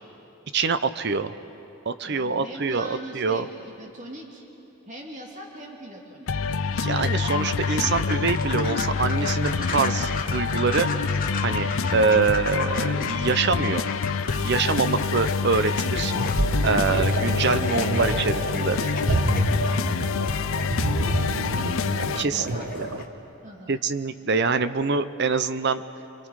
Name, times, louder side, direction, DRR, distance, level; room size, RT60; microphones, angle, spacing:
voice 1, 0.5-1.3 1.9-3.5 6.8-10.9 11.4-13.8 14.3-16.1 16.6-18.8 22.0-22.9 23.7-25.8, right 4 dB, 50° right, 12 dB, 0.7 m, -25 dB
voice 2, 2.0-3.5 3.8-4.4 4.9-6.3 14.6-14.9 17.5-20.5 20.8-21.3 22.3-23.0 23.4-23.8, right 1 dB, 35° right, -1 dB, 2.4 m, -42 dB
sound 1, 6.3-22.2, left 5 dB, 70° left, 0.6 m, -26 dB
sound 2, 7.0-23.1, left 5 dB, 40° left, 1.4 m, -37 dB
sound 3, 16.0-23.0, right 2 dB, 90° right, 1.3 m, -28 dB
30.0 x 24.0 x 4.8 m, 2.9 s
head